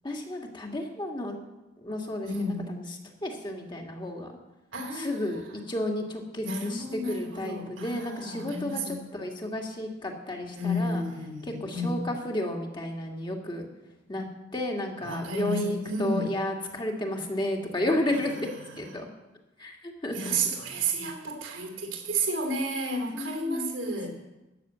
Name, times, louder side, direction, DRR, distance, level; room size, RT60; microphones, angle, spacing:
voice 1, 0.0-1.4 1.8-2.8 3.2-4.3 4.9-5.4 5.7-11.0 11.6-13.7 14.1-14.3 14.5-18.5 18.8-19.1 19.6-20.5 23.1-24.1, left 1 dB, 25° left, 1 dB, 1.9 m, -32 dB
voice 2, 2.2-2.7 4.7-5.4 6.4-9.1 10.5-12.1 15.0-16.2 18.1-18.8 20.1-24.1, right 1 dB, 80° right, 3 dB, 2.8 m, -32 dB
13.5 x 6.9 x 9.2 m, 1.0 s
head